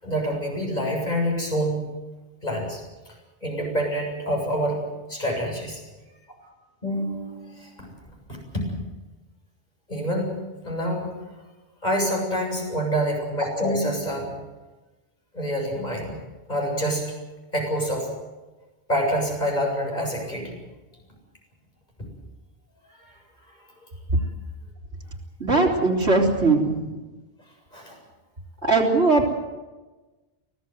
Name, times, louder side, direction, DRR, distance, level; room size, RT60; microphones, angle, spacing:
voice 1, 0.0-1.9 2.4-3.1 3.4-4.8 5.1-5.8 6.8-7.9 8.3-8.6 9.9-10.4 10.6-11.1 11.8-14.4 15.3-16.2 16.5-17.1 17.5-18.1 18.9-20.5 22.9-23.2 23.5-23.6 27.7-28.0, equal, 40° left, 0 dB, 7.8 m, -27 dB
voice 2, 25.4-27.0 28.6-29.3, right 3 dB, 85° right, 0 dB, 3.9 m, -20 dB
24.5 x 17.5 x 8.0 m, 1.2 s
omnidirectional pair, 1.1 m